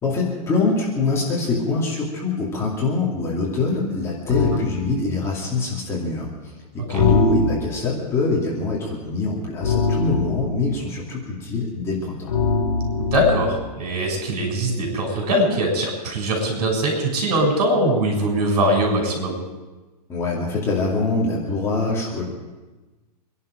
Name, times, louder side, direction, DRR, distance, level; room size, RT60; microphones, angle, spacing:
voice 1, 0.0-12.3 20.1-22.2, left 3 dB, 10° left, -4 dB, 2.5 m, -24 dB
sound 1, 4.3-4.7 6.9-7.9 9.6-10.7 12.3-13.6, left 4 dB, 60° left, 4.1 m, -22 dB
voice 2, 4.3-4.6 6.9-7.0 13.0-19.3, right 1 dB, 70° right, 1 dB, 7.0 m, -22 dB
25.5 x 11.0 x 5.1 m, 1.2 s
supercardioid pair, 170°, 21 cm